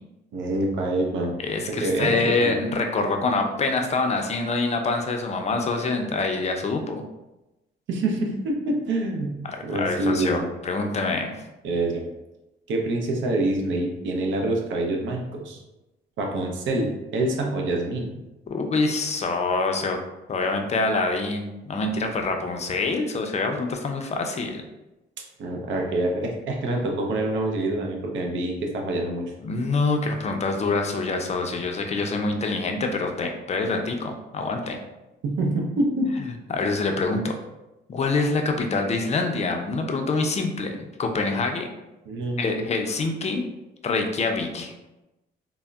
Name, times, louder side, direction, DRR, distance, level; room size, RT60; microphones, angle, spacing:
voice 1, 0.3-1.3 1.8-2.5 7.9-9.3 9.6-10.5 11.6-12.0 12.7-15.6 16.2-18.2 25.4-29.3 35.2-36.1 42.1-42.6, right 2 dB, 70° right, 1 dB, 0.6 m, -26 dB
voice 2, 1.4-7.0 9.4-11.4 18.5-20.0 20.3-24.6 29.4-34.8 36.2-37.4 37.9-41.7 42.4-43.4 43.8-44.7, left 3 dB, 35° left, 4 dB, 0.4 m, -25 dB
3.5 x 2.0 x 2.2 m, 0.98 s
cardioid pair, 90°, 20 cm